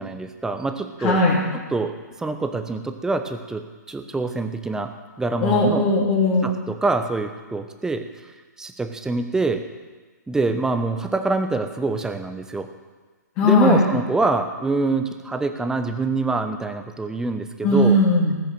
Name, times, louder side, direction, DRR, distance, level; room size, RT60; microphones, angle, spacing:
voice 1, 0.0-1.2 1.5-5.8 6.4-8.0 8.6-9.6 10.3-12.7 13.4-18.0, right 3 dB, 5° right, 7 dB, 1.0 m, -25 dB
voice 2, 1.0-1.4 5.4-6.5 13.4-13.8 17.6-18.3, left 2 dB, 30° left, -5 dB, 3.1 m, -18 dB
18.5 x 6.9 x 7.7 m, 1.3 s
hypercardioid pair, 130°, 10 cm